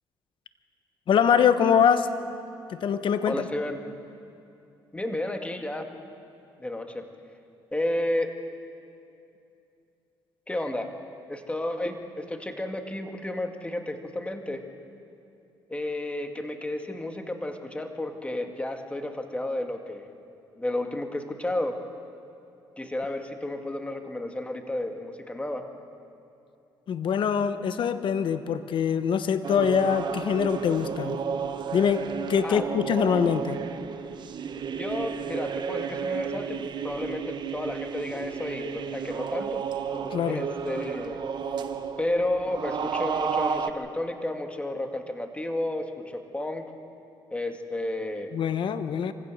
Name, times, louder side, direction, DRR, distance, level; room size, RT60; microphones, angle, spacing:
voice 1, 1.1-2.1 2.7-3.5 26.9-31.2 31.7-32.0 32.3-33.6 40.1-40.4 48.3-49.1, left 7 dB, 60° left, 11 dB, 1.2 m, -24 dB
voice 2, 3.3-3.8 4.9-5.9 6.6-7.1 7.7-8.3 10.5-10.9 11.3-14.6 15.7-20.1 20.6-21.8 22.8-25.6 32.4-32.6 34.7-39.6 40.3-41.2 42.0-46.6 47.3-48.3, left 1 dB, 15° left, 5 dB, 2.1 m, -32 dB
sound 1, 29.4-43.7, right 6 dB, 55° right, 1.0 m, -32 dB
25.0 x 16.0 x 6.5 m, 2.6 s
cardioid pair, 75°, 9 cm